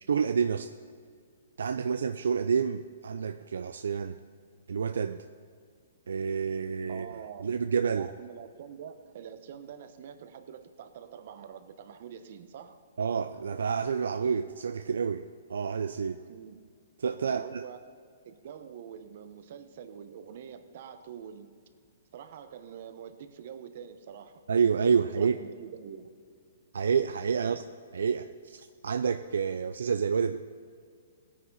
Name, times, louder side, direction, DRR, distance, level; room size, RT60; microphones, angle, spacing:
voice 1, 0.1-0.7 1.6-4.2 4.7-5.2 6.1-7.1 7.4-8.1 13.0-16.2 17.0-17.6 24.5-25.4 26.7-27.6 27.9-28.6 28.8-30.4, right 6 dB, 80° right, 9 dB, 0.4 m, -28 dB
voice 2, 6.9-7.5 8.0-12.8 16.3-16.6 17.2-17.8 18.2-21.5 22.1-24.4 24.7-24.8 25.1-26.1 27.4-27.6, right 8 dB, 55° right, 9 dB, 1.0 m, -45 dB
17.5 x 9.9 x 4.0 m, 2.2 s
hypercardioid pair, 145°, 0 cm